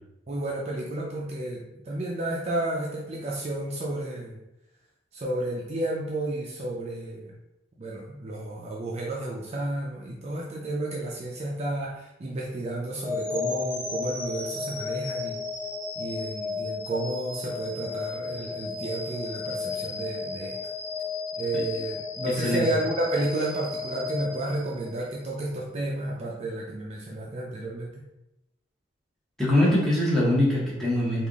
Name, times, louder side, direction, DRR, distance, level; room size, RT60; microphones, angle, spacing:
voice 1, 0.3-4.4 5.1-7.3 7.8-15.4 16.0-20.5 21.4-28.0, right 1 dB, 35° right, -3 dB, 0.4 m, -31 dB
sound 1, 13.0-25.1, left 4 dB, 15° left, 1.5 m, -34 dB
voice 2, 29.4-31.3, left 1 dB, ahead, -7 dB, 1.0 m, -23 dB
3.4 x 2.4 x 3.5 m, 0.91 s
head